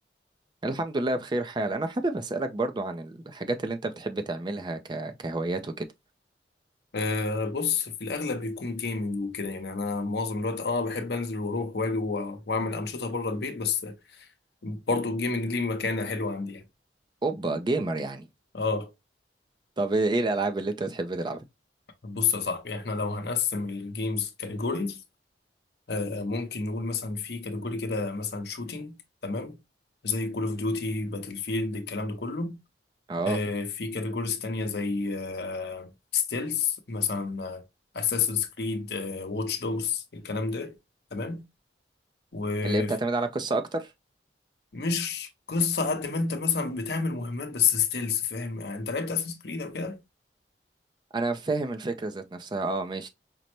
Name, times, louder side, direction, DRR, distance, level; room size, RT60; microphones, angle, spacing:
voice 1, 0.6-5.9 17.2-18.3 19.8-21.4 33.1-33.4 42.6-43.9 51.1-53.1, right 2 dB, 25° right, 0.4 m, -29 dB
voice 2, 6.9-14.3 14.6-16.6 18.5-18.9 22.0-25.0 25.9-28.9 29.2-29.6 30.0-32.6 33.3-37.6 37.9-40.7 41.1-41.4 42.3-42.9 44.7-50.0, left 4 dB, 65° left, 0.7 m, -30 dB
5.2 x 2.1 x 2.9 m
head